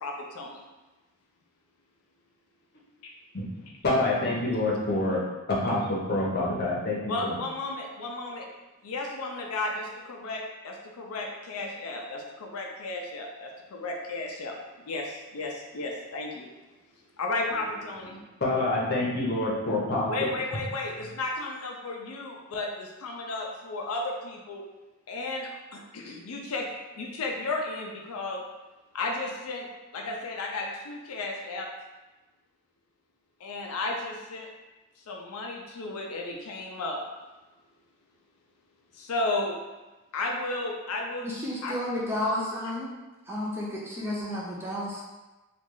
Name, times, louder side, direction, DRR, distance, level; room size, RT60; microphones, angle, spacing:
voice 1, 0.0-0.6 7.1-8.5 8.8-14.6 14.8-16.5 17.2-18.2 20.1-24.7 25.1-26.7 27.0-28.4 28.9-29.7 29.9-31.7 33.4-34.5 35.1-37.0 38.9-39.6 40.1-41.3 41.6-41.8, left 2 dB, 75° left, 1 dB, 0.5 m, -33 dB
voice 2, 3.3-5.2 5.5-7.4 18.4-20.1, left 2 dB, 45° left, -4 dB, 0.8 m, -27 dB
voice 3, 41.2-42.9 43.3-45.0, left 1 dB, 10° right, -5 dB, 0.5 m, -31 dB
3.1 x 2.4 x 3.7 m, 1.1 s
head